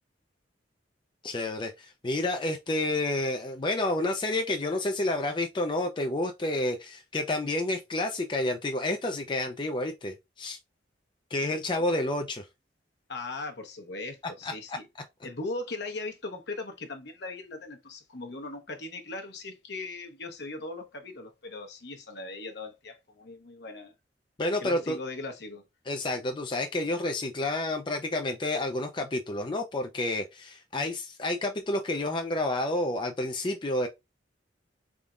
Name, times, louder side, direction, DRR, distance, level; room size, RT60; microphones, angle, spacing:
voice 1, 1.2-10.6 11.3-12.5 14.4-14.8 24.4-25.0 25.9-33.9, left 2 dB, 25° left, 0.4 m, -30 dB
voice 2, 13.1-14.9 15.2-23.9 24.6-25.6, left 2 dB, 60° left, 1.0 m, -39 dB
4.1 x 3.6 x 2.4 m
head